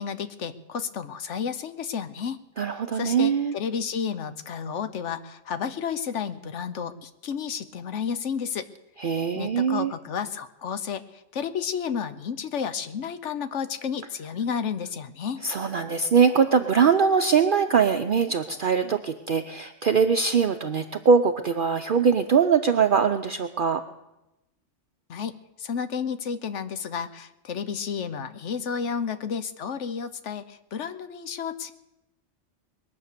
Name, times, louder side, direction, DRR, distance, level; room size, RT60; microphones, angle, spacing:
voice 1, 0.0-2.4 2.9-8.7 9.3-15.4 25.1-25.3 25.6-31.7, left 7 dB, 70° left, 11 dB, 1.2 m, -31 dB
voice 2, 2.6-3.5 9.0-9.9 15.4-23.8, right 6 dB, 55° right, 7 dB, 0.7 m, -22 dB
21.5 x 8.6 x 6.7 m, 0.95 s
omnidirectional pair, 1.3 m